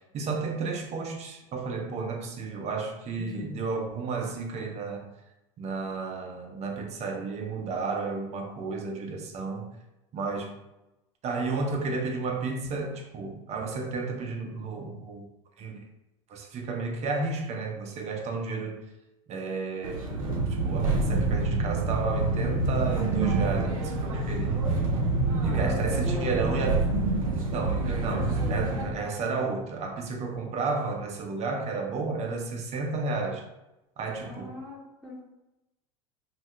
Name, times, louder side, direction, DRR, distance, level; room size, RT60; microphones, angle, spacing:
voice 1, 0.1-5.1 5.6-9.7 10.1-10.6 11.2-15.3 15.6-15.8 16.3-18.8 19.3-20.1 20.6-24.6 25.4-26.8 27.5-33.4 34.0-34.5, right 4 dB, 40° right, 2 dB, 0.7 m, -32 dB
voice 2, 3.2-3.6 25.4-26.7 34.2-35.2, equal, ahead, -8 dB, 0.8 m, -37 dB
sound 1, 19.8-28.9, right 3 dB, 85° right, 0.6 m, -27 dB
2.6 x 2.4 x 3.2 m, 0.95 s
hypercardioid pair, 85°, 17 cm